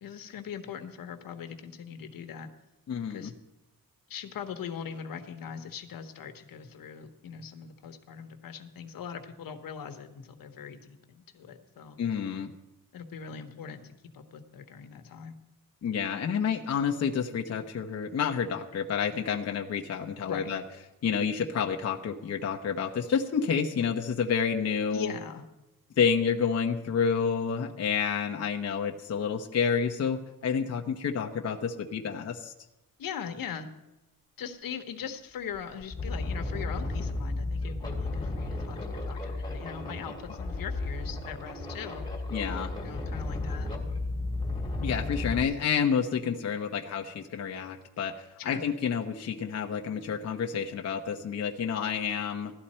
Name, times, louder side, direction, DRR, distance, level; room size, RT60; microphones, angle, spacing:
voice 1, 0.0-2.5 3.1-3.3 4.1-12.0 12.9-15.4 20.3-20.5 24.9-25.5 33.0-33.7 34.4-42.1 42.8-43.7 48.4-48.6, left 7 dB, 75° left, 7 dB, 1.3 m, -41 dB
voice 2, 2.9-3.3 12.0-12.5 15.8-20.6 21.0-25.1 26.0-32.5 42.3-42.7 44.8-48.1 48.4-52.5, left 6 dB, 45° left, 2 dB, 0.9 m, -29 dB
sound 1, 35.0-35.1 35.5-45.4, left 2 dB, 10° left, 2.1 m, -33 dB
16.5 x 12.5 x 4.3 m, 0.96 s
wide cardioid pair, 180°, 34 cm